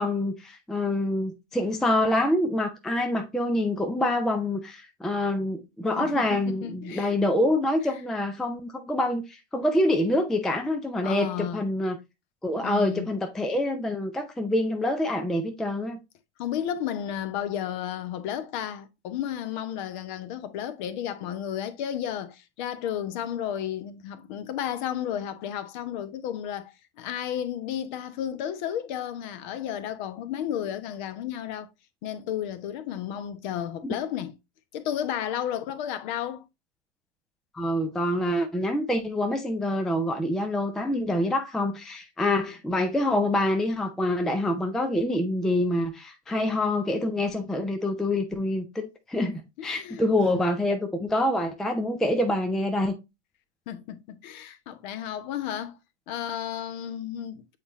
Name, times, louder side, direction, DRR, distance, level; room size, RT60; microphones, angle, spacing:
voice 1, 0.0-12.0 12.4-16.0 33.8-33.9 37.5-52.9, left 1 dB, ahead, 0.4 m, -26 dB
voice 2, 6.0-7.2 11.0-11.6 12.6-13.1 16.4-31.7 32.0-34.3 34.7-36.4 49.6-50.1 53.7-55.8 56.1-57.6, left 10 dB, 40° left, 1.0 m, -33 dB
8.1 x 4.2 x 3.0 m
figure-of-eight pair, 100°, 35 cm